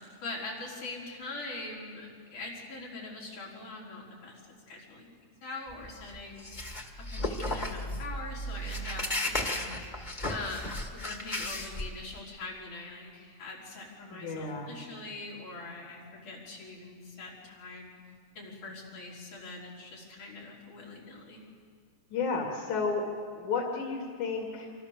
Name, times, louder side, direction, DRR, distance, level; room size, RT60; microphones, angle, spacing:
voice 1, 0.2-4.4 4.7-6.5 7.1-9.7 10.3-17.9 18.4-21.4, left 3 dB, 90° left, -4 dB, 6.2 m, -42 dB
sound 1, 5.7-12.2, left 1 dB, 20° left, 1.3 m, -35 dB
voice 2, 14.1-14.7 22.1-23.0 23.4-24.7, left 4 dB, 70° left, 1 dB, 3.9 m, -32 dB
26.0 x 26.0 x 6.9 m, 2.1 s
omnidirectional pair, 3.4 m